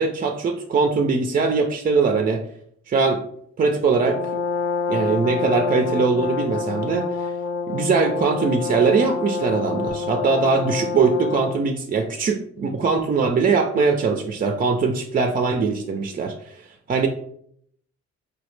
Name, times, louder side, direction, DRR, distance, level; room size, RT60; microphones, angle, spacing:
voice 1, 0.0-2.4 2.9-3.2 3.6-4.2 4.9-7.1 7.7-16.5 16.9-17.1, right 4 dB, 30° right, 4 dB, 0.4 m, -21 dB
Brass instrument, 3.9-11.7, left 5 dB, 45° left, 0.5 m, -27 dB
4.8 x 2.0 x 3.1 m, 0.68 s
cardioid pair, 90°, 30 cm